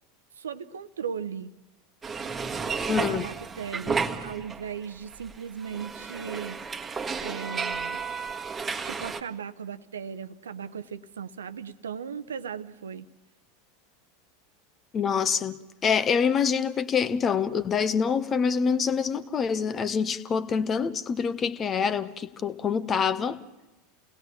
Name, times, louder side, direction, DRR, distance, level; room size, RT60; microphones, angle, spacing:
voice 1, 0.4-1.5 3.1-6.6 7.2-8.0 8.8-13.1, right 7 dB, 70° right, 0.9 m, -37 dB
sound 1, 2.0-4.9 5.1-9.2, right 5 dB, 20° right, 1.5 m, -32 dB
voice 2, 2.9-3.2 14.9-23.4, left 6 dB, 25° left, 1.1 m, -26 dB
29.5 x 19.0 x 7.3 m
figure-of-eight pair, 80°, 0 cm